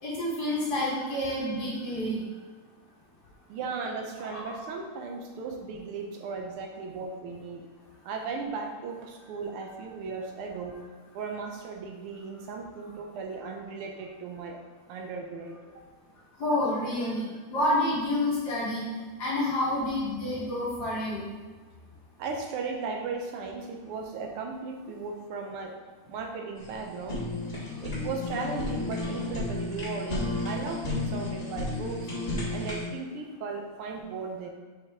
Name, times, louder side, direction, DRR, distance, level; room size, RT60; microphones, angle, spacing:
voice 1, 0.0-2.2 4.2-4.6 16.4-18.9 19.2-21.3, left 1 dB, 50° left, -8 dB, 2.2 m, -29 dB
voice 2, 3.5-7.7 8.0-10.9 11.1-14.6 14.9-15.9 22.2-25.8 26.1-27.2 27.8-32.1 32.5-34.5, right 4 dB, 85° right, 2 dB, 1.7 m, -36 dB
Fire, 26.6-32.9, left 2 dB, 20° left, 1.6 m, -33 dB
5.5 x 4.8 x 3.6 m, 1.4 s
omnidirectional pair, 2.4 m